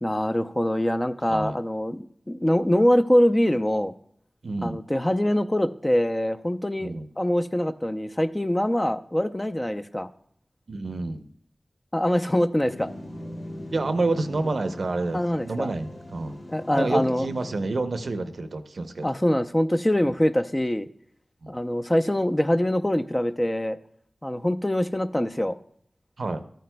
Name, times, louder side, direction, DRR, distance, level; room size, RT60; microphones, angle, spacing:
voice 1, 0.0-3.9 4.6-10.1 11.9-12.9 15.1-15.7 16.5-17.3 19.0-20.9 21.5-23.8 24.2-25.6, left 1 dB, 20° left, 9 dB, 0.5 m, -24 dB
voice 2, 4.4-4.8 6.8-7.1 10.7-11.3 13.7-16.4 16.7-19.1 21.4-21.5 26.2-26.4, right 2 dB, 80° right, 9 dB, 0.6 m, -28 dB
sound 1, 12.6-17.9, left 1 dB, 80° left, 1.5 m, -40 dB
13.5 x 9.2 x 2.2 m, 0.65 s
cardioid pair, 45°, 0 cm